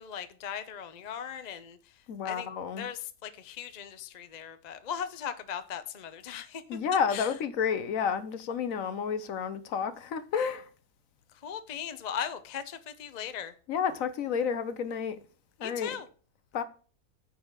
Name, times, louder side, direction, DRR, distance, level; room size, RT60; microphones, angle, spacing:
voice 1, 0.0-1.8 2.2-2.5 2.8-6.6 7.1-7.3 11.4-13.5 15.6-16.1, left 8 dB, 40° left, 0.6 m, -38 dB
voice 2, 2.1-2.9 6.7-10.7 13.7-15.2 15.6-16.0 16.5-16.6, left 7 dB, 65° left, 1.1 m, -30 dB
9.5 x 4.0 x 6.5 m
omnidirectional pair, 1.6 m